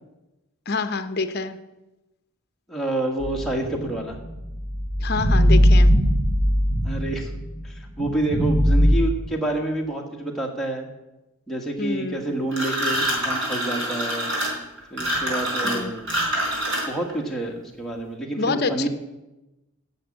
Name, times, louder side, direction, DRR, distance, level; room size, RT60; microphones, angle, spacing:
voice 1, 0.7-1.6 5.0-5.9 11.8-12.2 15.6-15.9 18.4-18.9, left 4 dB, 45° left, 10 dB, 0.8 m, -26 dB
voice 2, 2.7-4.2 6.8-7.4 7.6-10.9 11.5-14.3 14.9-16.1 16.8-18.9, right 1 dB, ahead, -1 dB, 1.6 m, -28 dB
sound 1, 3.2-7.5 8.0-8.9, equal, 85° right, 5.8 m, -20 dB
sound 2, 12.5-17.1, right 1 dB, 55° right, 4.4 m, -26 dB
10.5 x 7.4 x 8.6 m, 1.0 s
head